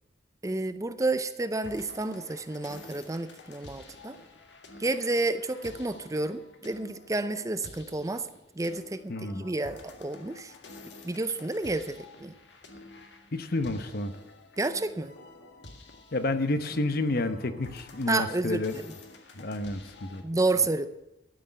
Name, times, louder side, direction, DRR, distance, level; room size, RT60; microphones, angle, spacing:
voice 1, 0.4-4.2 4.8-8.3 8.6-10.5 11.0-12.3 14.6-15.1 18.1-18.9 20.2-20.9, right 2 dB, 20° right, 11 dB, 0.6 m, -30 dB
sound 1, 1.6-20.2, left 2 dB, 70° left, 1.8 m, -50 dB
voice 2, 9.1-9.4 13.3-14.1 16.1-18.7 19.4-20.2, left 2 dB, 55° left, 10 dB, 0.9 m, -30 dB
12.5 x 6.6 x 9.6 m, 0.89 s
head